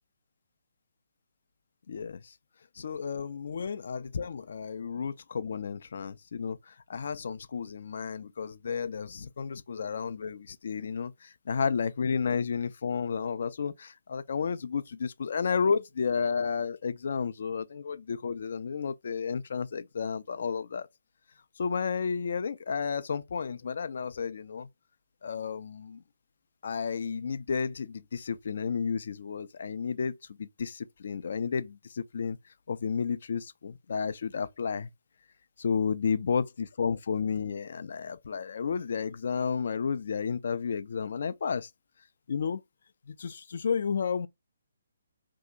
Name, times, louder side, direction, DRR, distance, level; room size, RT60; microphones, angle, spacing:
voice 1, 1.9-2.3 2.8-20.9 21.6-24.7 25.2-26.0 26.6-32.4 32.7-34.9 35.6-41.7 42.3-42.6 43.1-44.3, left 6 dB, 55° left, 0.3 m, -32 dB
2.7 x 2.3 x 3.8 m
figure-of-eight pair, 135°, 0 cm